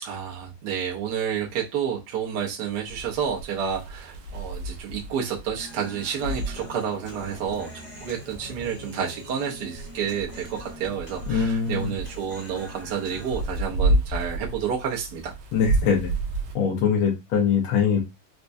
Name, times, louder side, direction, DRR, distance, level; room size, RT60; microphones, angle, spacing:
voice 1, 0.0-7.7 8.0-15.3, right 7 dB, 65° right, -2 dB, 1.2 m, -30 dB
sound 1, 2.9-16.5, right 2 dB, 90° right, 1.5 m, -32 dB
Human voice, 5.6-13.6, left 1 dB, 35° left, 0.7 m, -44 dB
voice 2, 11.3-11.9 15.5-16.1 16.5-18.0, left 6 dB, 80° left, 1 dB, 1.6 m, -22 dB
4.4 x 2.1 x 2.5 m, 0.23 s
omnidirectional pair, 2.2 m